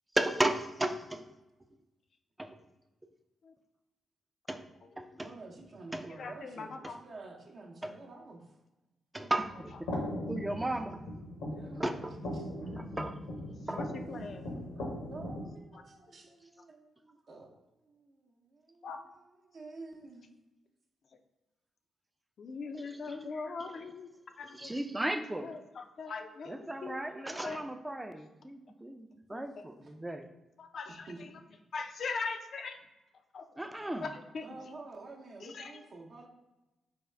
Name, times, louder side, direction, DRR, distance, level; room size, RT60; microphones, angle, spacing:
voice 1, 0.1-1.3 2.4-2.6 4.5-4.7 5.0-5.3 5.9-6.1 7.8-7.9 9.1-9.9 10.3-11.0 11.8-12.1 12.7-13.2 13.7-13.9 22.8-23.3 23.6-23.9 24.5-25.5 26.5-30.3 33.6-34.1, right 1 dB, 15° right, 8 dB, 0.3 m, -35 dB
voice 2, 5.2-8.6 11.4-12.5 14.7-20.3 29.8-29.9 31.1-31.4 34.4-36.3, right 3 dB, 60° right, -1 dB, 0.6 m, -50 dB
voice 3, 6.2-7.0 10.1-10.2 13.8-14.5 18.8-19.0 22.4-24.1 24.4-24.8 25.1-27.0 27.3-27.6 29.3-29.4 30.6-31.1 31.7-32.8 33.3-33.4 34.0-34.4 35.4-35.7, left 4 dB, 60° left, 6 dB, 0.3 m, -40 dB
sound 1, 9.4-15.5, left 1 dB, 80° left, 0.7 m, -39 dB
3.5 x 2.3 x 3.2 m, 1.0 s
hypercardioid pair, 40°, 0 cm